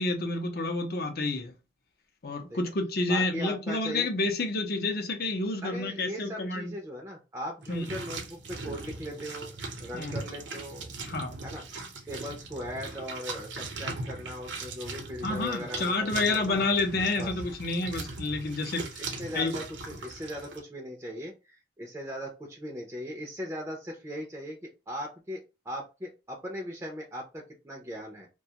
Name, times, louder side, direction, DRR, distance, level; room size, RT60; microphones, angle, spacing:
voice 1, 0.0-1.5 2.2-6.7 7.7-7.9 9.9-10.2 11.1-11.3 15.2-19.0 19.3-19.5, left 2 dB, 55° left, 0.6 m, -29 dB
voice 2, 3.1-4.1 5.6-10.9 11.4-11.6 12.1-16.6 17.2-17.4 19.0-28.3, equal, 15° right, 0.4 m, -39 dB
sound 1, 7.6-20.6, right 3 dB, 85° right, 0.7 m, -39 dB
2.4 x 2.3 x 2.8 m
head